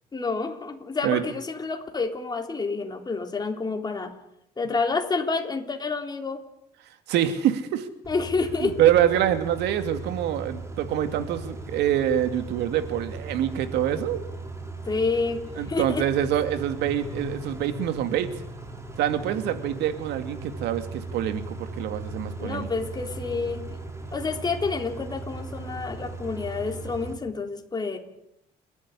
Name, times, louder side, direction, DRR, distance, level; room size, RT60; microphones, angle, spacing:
voice 1, 0.1-4.1 4.6-6.4 8.1-8.8 14.9-15.4 15.7-16.0 22.4-23.8 24.1-28.0, left 4 dB, 25° left, 4 dB, 3.7 m, -28 dB
voice 2, 7.1-7.9 8.6-14.2 15.6-18.3 19.0-22.7, right 11 dB, 85° right, 9 dB, 2.4 m, -25 dB
Car / Idling / Accelerating revving vroom, 8.0-27.1, right 2 dB, 15° right, 4.6 m, -38 dB
29.5 x 11.5 x 9.9 m, 0.80 s
cardioid pair, 110°, 17 cm